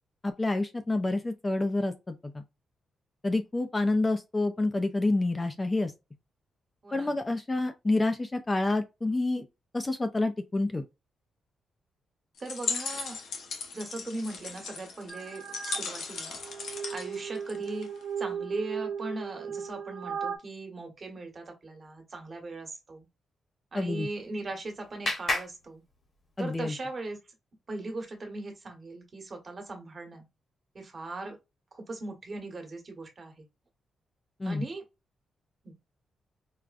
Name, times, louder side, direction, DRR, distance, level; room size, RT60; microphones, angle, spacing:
voice 1, 0.2-2.1 3.2-5.9 6.9-9.4 9.7-10.8 23.7-24.1 26.4-26.7 34.4-34.6, left 2 dB, 20° left, 0.4 m, -28 dB
voice 2, 6.8-7.1 12.4-13.2 13.7-16.3 16.9-17.9 18.2-23.1 23.7-25.8 26.4-27.2 27.7-30.2 30.7-31.4 31.7-33.5 34.4-34.8 35.6-35.7, right 2 dB, 40° right, 1.2 m, -39 dB
sound 1, 12.4-18.0, left 4 dB, 80° left, 0.9 m, -37 dB
sound 2, 15.1-15.8 16.3-20.4, right 7 dB, 75° right, 0.4 m, -36 dB
Clapping, 23.9-26.6, left 2 dB, 45° left, 1.1 m, -36 dB
4.7 x 2.2 x 2.5 m
cardioid pair, 105°, 0 cm